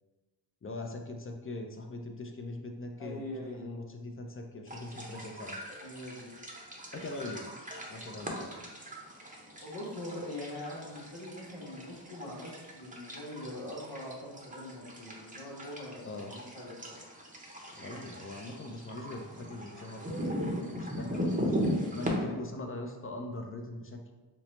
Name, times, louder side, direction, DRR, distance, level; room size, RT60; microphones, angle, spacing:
voice 1, 0.6-5.6 6.9-7.5 7.9-8.6 16.0-16.3 17.7-24.0, left 2 dB, 30° left, 3 dB, 0.5 m, -41 dB
voice 2, 3.0-3.6 5.8-6.3 9.4-17.0, left 1 dB, 75° left, -5 dB, 0.9 m, -43 dB
sound 1, 4.7-22.1, equal, 20° right, 0.7 m, -39 dB
4.4 x 2.0 x 3.0 m, 1.2 s
cardioid pair, 45°, 44 cm